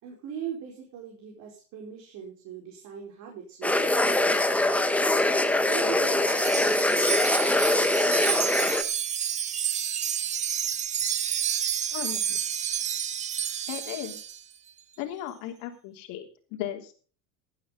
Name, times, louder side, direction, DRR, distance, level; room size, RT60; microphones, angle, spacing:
voice 1, 0.0-4.4 5.7-6.8 7.4-7.5 7.8-8.3, right 8 dB, 50° right, 0 dB, 4.5 m, -40 dB
sound 1, 3.6-8.8, left 2 dB, 5° left, 1.1 m, -23 dB
Wind chime, 6.2-14.4, right 9 dB, 20° right, 0.5 m, -30 dB
voice 2, 11.9-12.4 13.7-14.2 15.0-16.9, left 12 dB, 60° left, 4 dB, 3.3 m, -36 dB
16.5 x 10.0 x 3.9 m, 0.40 s
supercardioid pair, 130°, 37 cm